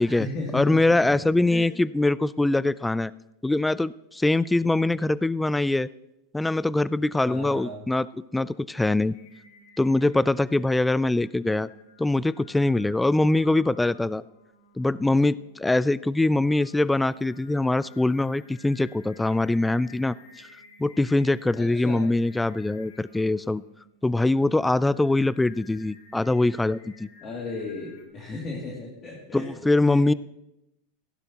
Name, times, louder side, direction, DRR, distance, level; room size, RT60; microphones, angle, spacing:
voice 1, 0.0-1.7 7.2-7.8 21.5-22.0 27.2-29.5 29.8-30.1, left 3 dB, 35° left, -3 dB, 2.5 m, -35 dB
voice 2, 0.5-3.1 3.4-5.9 6.3-9.2 9.8-11.7 12.0-14.2 14.8-20.5 20.8-23.6 24.0-27.1 29.3-30.1, left 2 dB, 5° left, 19 dB, 0.3 m, -23 dB
Singing, 9.1-28.0, left 3 dB, 70° left, 2.2 m, -54 dB
15.5 x 11.5 x 2.9 m, 0.87 s
hypercardioid pair, 100°, 0 cm